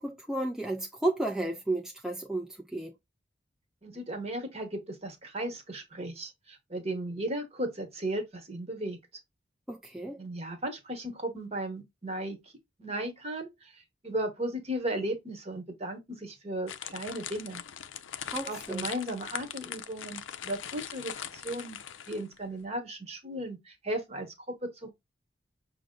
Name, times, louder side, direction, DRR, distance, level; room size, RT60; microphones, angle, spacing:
voice 1, 0.0-2.9 9.7-10.2 18.3-18.9, right 2 dB, 5° right, 0.3 m, -33 dB
voice 2, 3.8-9.0 10.2-12.4 12.8-13.5 14.0-17.6 18.5-21.8 22.1-24.9, right 1 dB, 35° right, 1.0 m, -35 dB
sound 1, 16.7-22.4, left 9 dB, 85° left, 0.5 m, -41 dB
6.0 x 2.0 x 3.7 m
head